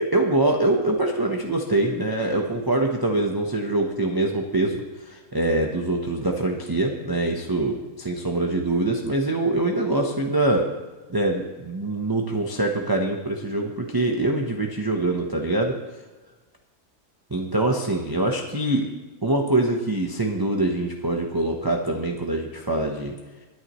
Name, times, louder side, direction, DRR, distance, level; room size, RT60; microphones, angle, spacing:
voice 1, 0.0-10.7 11.1-15.7 17.3-18.9 19.2-23.1, right 2 dB, 20° right, 1 dB, 0.8 m, -24 dB
22.0 x 9.9 x 3.1 m, 1.2 s
omnidirectional pair, 1.6 m